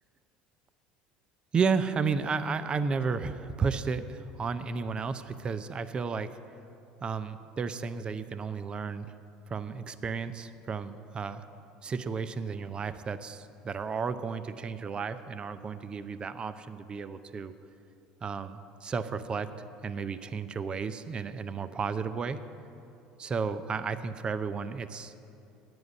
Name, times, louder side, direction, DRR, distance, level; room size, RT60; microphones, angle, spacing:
voice 1, 1.5-6.3 7.0-9.1 9.5-11.4 11.8-17.5 18.2-19.5 19.8-22.4 23.2-25.1, right 5 dB, 30° right, 12 dB, 0.5 m, -33 dB
9.5 x 7.8 x 8.3 m, 2.7 s
supercardioid pair, 90°, 3 cm